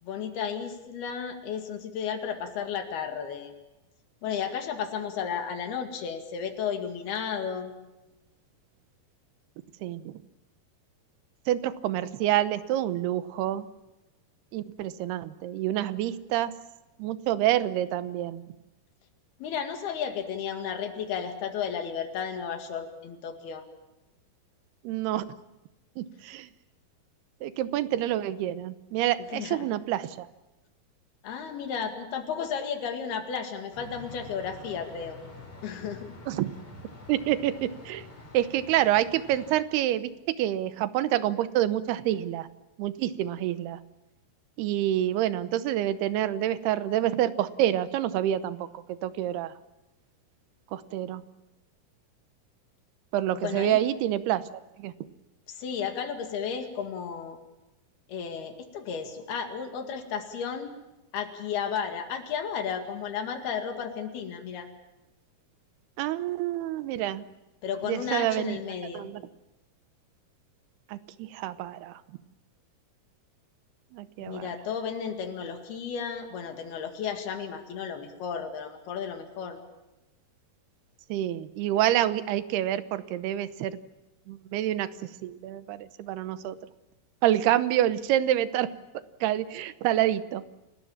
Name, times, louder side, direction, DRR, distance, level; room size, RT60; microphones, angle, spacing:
voice 1, 0.0-3.5 4.2-7.7 19.4-23.7 29.4-29.7 31.2-35.2 35.6-36.1 53.4-53.8 55.5-57.4 58.1-60.7 61.1-64.7 67.6-69.1 74.2-79.6, left 7 dB, 80° left, 5 dB, 4.1 m, -33 dB
voice 2, 9.8-10.2 11.5-13.7 14.5-16.5 17.0-18.4 24.8-25.2 26.0-26.5 27.4-30.3 36.3-36.5 37.1-38.0 38.3-42.5 42.8-43.8 44.6-49.5 50.7-51.2 53.1-54.4 54.8-54.9 66.0-67.2 67.8-68.6 68.9-69.2 70.9-72.0 73.9-74.5 81.1-83.8 84.3-84.9 85.2-86.6 87.2-88.7 89.2-90.4, right 13 dB, 85° right, 14 dB, 2.9 m, -27 dB
sound 1, 33.7-39.6, left 2 dB, 35° left, 5.5 m, -47 dB
29.5 x 18.5 x 7.3 m, 1.0 s
omnidirectional pair, 4.5 m